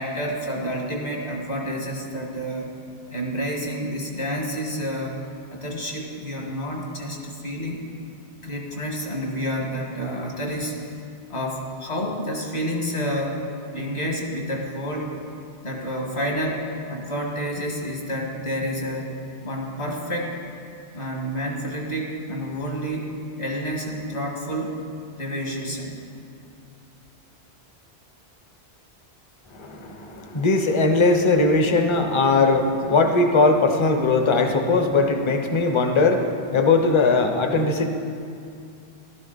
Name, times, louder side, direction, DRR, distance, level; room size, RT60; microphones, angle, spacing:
voice 1, 0.0-2.7 3.1-5.1 5.5-7.8 8.4-10.9 11.3-13.4 13.7-15.2 15.6-19.1 19.4-20.4 20.9-24.8 25.2-26.0, equal, 55° left, -1 dB, 2.0 m, -29 dB
voice 2, 29.5-37.9, left 3 dB, 30° left, 5 dB, 0.8 m, -20 dB
15.0 x 12.0 x 4.0 m, 2.4 s
omnidirectional pair, 1.1 m